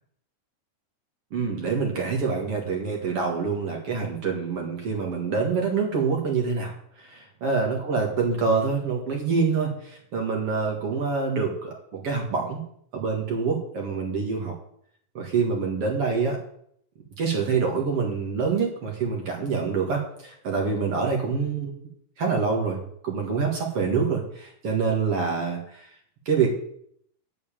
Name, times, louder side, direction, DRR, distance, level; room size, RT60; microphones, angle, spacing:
voice 1, 1.3-6.7 7.0-7.2 7.4-12.6 12.9-14.5 15.1-16.4 17.2-21.8 22.2-25.9 26.3-26.5, right 5 dB, 50° right, 1 dB, 2.5 m, -26 dB
9.3 x 7.2 x 7.4 m, 0.66 s
omnidirectional pair, 3.9 m